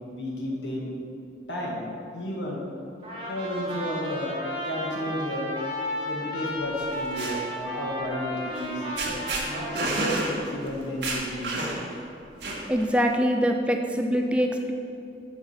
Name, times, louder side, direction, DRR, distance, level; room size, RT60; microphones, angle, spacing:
voice 1, 0.1-1.0 1.5-1.8 2.1-2.6 3.1-4.4 4.6-5.6 6.0-11.6, left 1 dB, 85° left, -3 dB, 1.7 m, -32 dB
Trumpet, 3.0-10.5, equal, 30° right, 1.5 m, -34 dB
sound 1, 6.8-7.4 8.6-8.7 9.0-9.4 9.8-10.3 10.7-10.8 11.0-11.9 12.4-12.9, right 2 dB, 75° right, 1.6 m, -29 dB
voice 2, 12.7-14.7, equal, 5° right, 3 dB, 0.4 m, -24 dB
7.1 x 5.0 x 5.6 m, 2.6 s
head